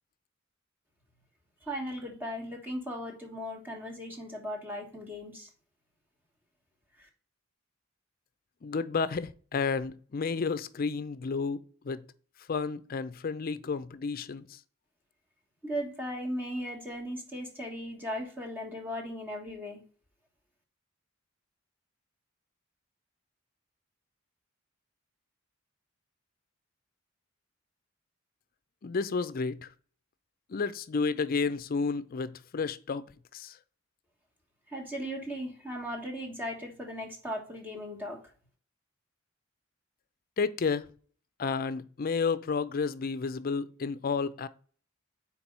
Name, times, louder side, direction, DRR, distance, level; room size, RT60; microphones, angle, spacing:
voice 1, 1.6-5.5 7.0-7.1 15.6-19.8 34.7-38.2, equal, 10° right, 1.3 m, -37 dB
voice 2, 8.6-11.6 11.8-12.0 12.5-14.6 28.8-29.7 30.5-33.0 33.3-33.6 40.4-40.9 41.4-44.5, left 5 dB, 45° left, 0.4 m, -31 dB
4.5 x 4.1 x 5.3 m
head